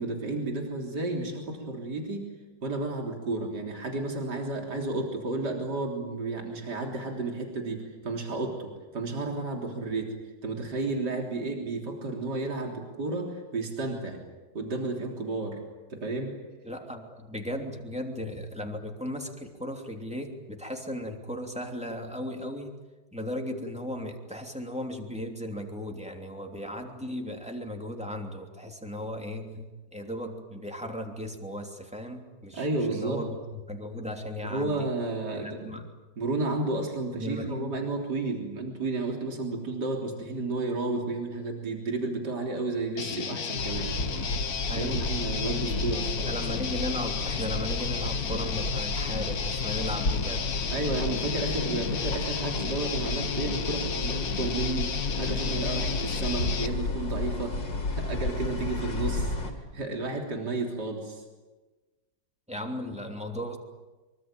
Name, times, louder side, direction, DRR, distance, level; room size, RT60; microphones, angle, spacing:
voice 1, 0.0-2.3 2.6-10.1 10.4-14.2 14.5-15.6 15.9-16.3 32.5-33.2 34.4-35.7 36.2-43.9 44.8-46.4 50.7-57.6 57.9-59.3 59.7-61.2, right 2 dB, 60° right, 1 dB, 4.1 m, -32 dB
voice 2, 16.6-22.7 23.1-34.9 35.3-35.8 37.1-37.7 44.7-45.1 46.2-50.5 62.5-63.6, left 1 dB, 5° right, 2 dB, 3.0 m, -36 dB
Guitar, 43.0-56.7, left 7 dB, 55° left, 1.7 m, -33 dB
sound 1, 43.6-59.5, left 2 dB, 80° left, 3.8 m, -32 dB
25.0 x 24.0 x 9.0 m, 1.2 s
omnidirectional pair, 2.0 m